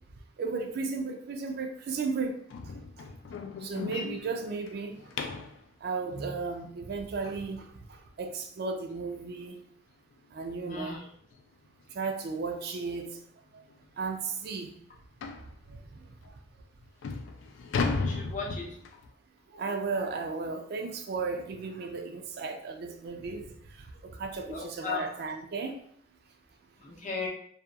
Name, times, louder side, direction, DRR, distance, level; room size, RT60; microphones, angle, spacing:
voice 1, 0.4-2.3 2.6-3.0 3.6-5.1 5.8-9.7 10.3-11.0 11.9-13.2 13.5-13.6 14.0-14.7 15.7-16.3 19.5-25.8, right 4 dB, 55° right, 4 dB, 0.3 m, -35 dB
sound 1, 2.5-5.6 8.4-8.5 9.0-9.2 9.5-9.6 10.1-10.2 11.3-11.4 11.8-12.0 12.6-12.7 13.1-13.2 13.7-13.8 15.2-15.5 16.2-16.3 16.8-19.1, left 4 dB, 85° left, 0.3 m, -35 dB
voice 2, 10.7-11.0 17.9-18.7 24.5-25.1 26.8-27.3, left 5 dB, 40° left, -1 dB, 0.6 m, -36 dB
2.7 x 2.2 x 2.3 m, 0.63 s
head